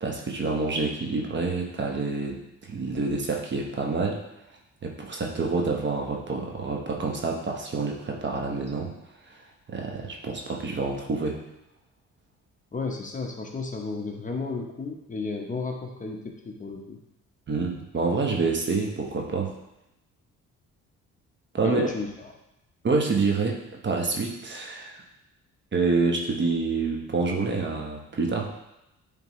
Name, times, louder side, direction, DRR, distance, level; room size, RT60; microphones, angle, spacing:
voice 1, 0.0-2.4 2.7-4.2 4.8-8.9 9.7-11.4 17.5-19.5 21.5-21.9 22.8-25.0 25.7-28.5, right 4 dB, 40° right, 1 dB, 1.1 m, -27 dB
voice 2, 12.7-17.0 21.6-22.3, left 3 dB, 25° left, 1 dB, 0.9 m, -33 dB
9.0 x 3.6 x 3.1 m, 0.89 s
cardioid pair, 90°, 30 cm